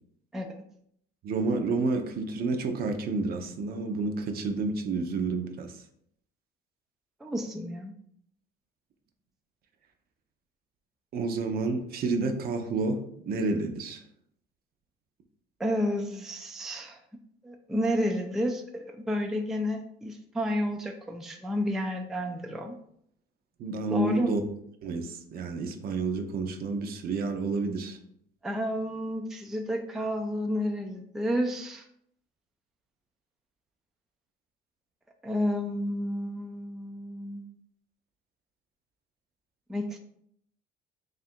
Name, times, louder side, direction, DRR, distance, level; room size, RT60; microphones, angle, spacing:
voice 1, 1.2-5.8 11.1-14.0 23.6-24.4 24.8-28.0, right 3 dB, 55° right, 6 dB, 0.6 m, -30 dB
voice 2, 7.2-7.9 15.6-17.0 17.4-22.8 23.9-24.3 28.4-31.8 35.2-37.5 39.7-40.0, equal, ahead, 3 dB, 0.3 m, -31 dB
3.2 x 2.5 x 4.3 m, 0.69 s
cardioid pair, 120°, 19 cm